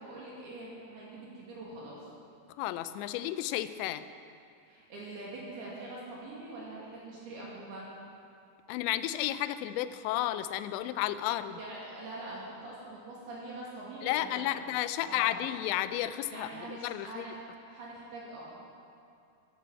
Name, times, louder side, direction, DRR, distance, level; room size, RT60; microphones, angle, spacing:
voice 1, 0.0-2.1 4.7-7.9 11.4-14.7 15.0-15.4 16.3-17.4 17.6-18.6, right 2 dB, 65° right, -6 dB, 4.0 m, -44 dB
voice 2, 2.6-4.0 8.7-11.6 14.0-17.3, left 13 dB, 85° left, 13 dB, 2.8 m, -32 dB
12.0 x 11.0 x 7.5 m, 2.5 s
omnidirectional pair, 5.1 m